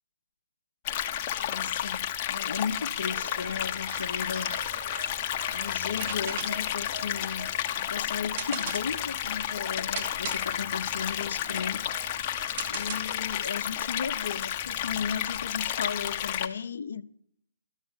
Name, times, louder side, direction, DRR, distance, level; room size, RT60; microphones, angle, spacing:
sound 1, 0.8-16.5, left 10 dB, 30° left, 0.8 m, -32 dB
voice 1, 1.3-4.6 5.5-7.5 7.8-11.8 12.7-17.0, left 6 dB, 65° left, 0.7 m, -35 dB
sound 2, 3.0-12.7, right 3 dB, 55° right, 1.8 m, -48 dB
sound 3, 5.8-13.4, right 6 dB, 35° right, 1.2 m, -40 dB
12.0 x 6.9 x 9.7 m
hypercardioid pair, 150°, 0 cm